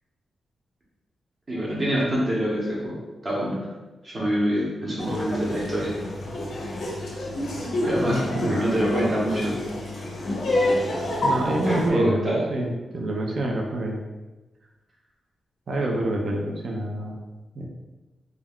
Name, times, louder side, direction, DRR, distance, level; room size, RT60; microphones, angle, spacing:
voice 1, 1.5-3.0 3.2-3.7 4.0-5.9 7.8-9.6 11.6-12.4, right 1 dB, 30° right, -5 dB, 0.8 m, -25 dB
Laughter, 5.0-11.9, left 1 dB, 55° left, 0.5 m, -28 dB
voice 2, 8.0-8.6 11.2-14.0 15.7-17.2 17.5-17.7, right 1 dB, 50° right, 0 dB, 0.4 m, -27 dB
2.3 x 2.2 x 3.4 m, 1.1 s
wide cardioid pair, 165°, 0 cm